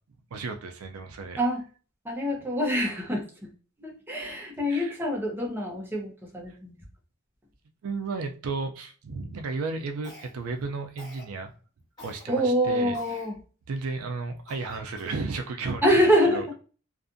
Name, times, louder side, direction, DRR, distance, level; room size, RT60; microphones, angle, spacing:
voice 1, 0.3-1.4 4.7-4.9 7.8-11.5 12.0-12.9 13.7-16.0 16.3-16.5, right 3 dB, 85° right, 0.4 m, -33 dB
voice 2, 2.0-3.5 3.8-6.8 12.3-13.4 15.8-16.5, equal, 10° right, 0.7 m, -25 dB
Cough, 10.0-10.6 11.0-11.3 12.0-12.2 12.9-13.3 13.8-13.9 14.5-15.3, left 1 dB, 20° left, 1.4 m, -48 dB
2.5 x 2.4 x 2.5 m
head